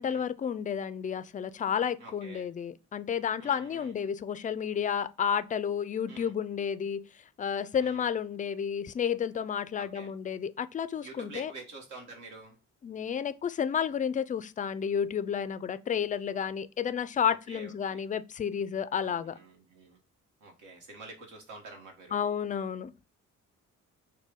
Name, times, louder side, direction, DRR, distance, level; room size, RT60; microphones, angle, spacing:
voice 1, 0.0-7.1 7.4-11.5 12.8-19.4 22.1-22.9, left 7 dB, 25° left, 0.3 m, -31 dB
voice 2, 2.0-2.5 3.4-3.9 6.1-6.3 7.7-8.1 9.7-10.1 11.0-12.6 17.3-18.0 18.9-20.0 20.4-22.2, right 3 dB, 75° right, 1.3 m, -48 dB
6.2 x 2.2 x 3.6 m
cardioid pair, 90°, 30 cm